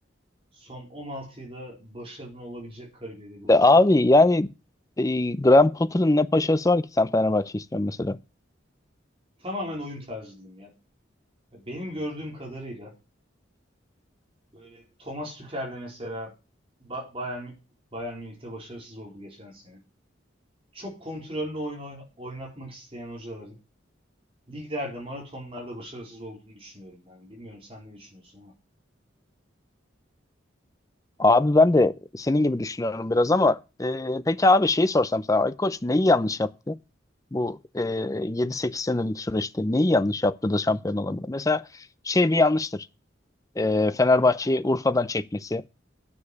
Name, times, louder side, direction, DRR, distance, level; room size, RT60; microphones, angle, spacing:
voice 1, 0.5-3.8 9.4-10.7 11.5-13.0 14.5-16.3 16.8-17.6 17.9-19.8 20.7-23.6 24.5-28.5, equal, 30° right, 4.2 m, -37 dB
voice 2, 3.5-4.5 5.0-8.2 31.2-36.8 37.3-41.7 42.1-42.9 43.6-45.6, left 2 dB, 20° left, 0.5 m, -22 dB
9.8 x 7.0 x 6.6 m
head